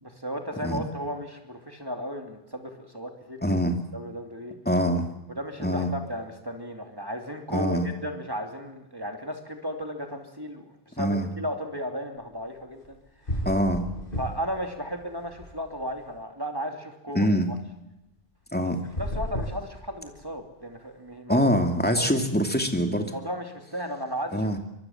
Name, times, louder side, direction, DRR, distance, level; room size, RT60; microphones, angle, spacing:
voice 1, 0.0-3.4 3.9-4.5 5.3-10.6 10.9-13.0 14.2-17.3 19.0-21.4 22.0-22.2 23.1-24.6, equal, 20° right, 4 dB, 2.9 m, -35 dB
voice 2, 3.4-3.8 4.7-5.1 5.6-5.9 7.5-7.9 11.0-11.3 13.4-13.8 17.1-17.5 18.5-18.8 21.3-23.1 24.3-24.6, equal, 10° left, 4 dB, 2.7 m, -24 dB
Body falling to floor, 12.8-13.0 13.3-14.6 14.9-16.0 18.8-20.3, equal, 60° left, 5.9 m, -33 dB
25.0 x 22.0 x 7.4 m, 0.87 s
omnidirectional pair, 1.0 m